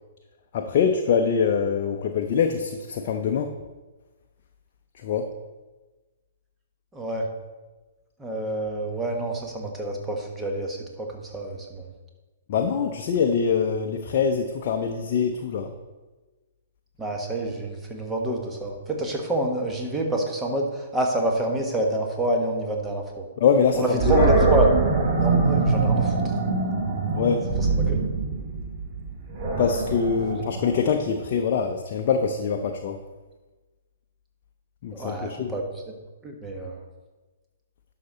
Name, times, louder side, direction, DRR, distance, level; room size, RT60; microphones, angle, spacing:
voice 1, 0.5-3.5 5.0-5.3 12.5-15.7 23.4-24.3 27.1-27.4 29.6-33.0 34.8-35.5, left 6 dB, 45° left, 4 dB, 0.7 m, -24 dB
voice 2, 6.9-7.3 8.2-11.9 17.0-23.3 23.7-24.7 25.2-26.4 27.6-28.1 30.2-30.3 34.9-35.9 36.2-36.8, right 1 dB, 10° right, 1 dB, 1.5 m, -28 dB
Animal, 24.0-31.1, right 3 dB, 30° right, 1.8 m, -23 dB
11.5 x 5.8 x 4.0 m, 1.2 s
figure-of-eight pair, 120°, 0 cm